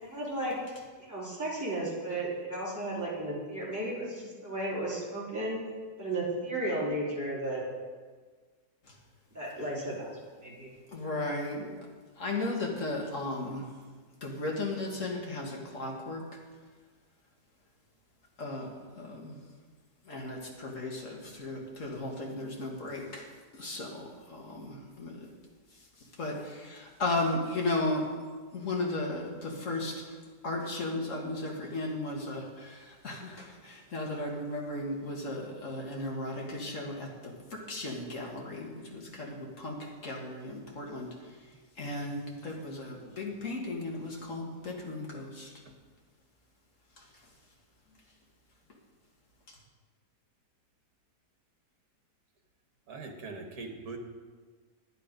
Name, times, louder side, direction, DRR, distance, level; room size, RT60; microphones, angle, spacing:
voice 1, 0.0-0.6 1.0-5.6 6.0-7.6 9.3-10.1 10.4-10.7 11.0-11.2, right 1 dB, 10° right, 3.4 m, -34 dB
voice 2, 10.9-11.7 12.2-13.6 14.2-16.3 18.4-18.7 19.0-19.4 20.1-23.3 23.5-25.3 26.2-28.1 28.5-30.0 30.4-41.1 41.8-45.5, left 2 dB, 50° left, 2.1 m, -35 dB
voice 3, 52.9-54.0, right 3 dB, 65° right, 1.8 m, -41 dB
10.5 x 10.0 x 5.2 m
omnidirectional pair, 1.8 m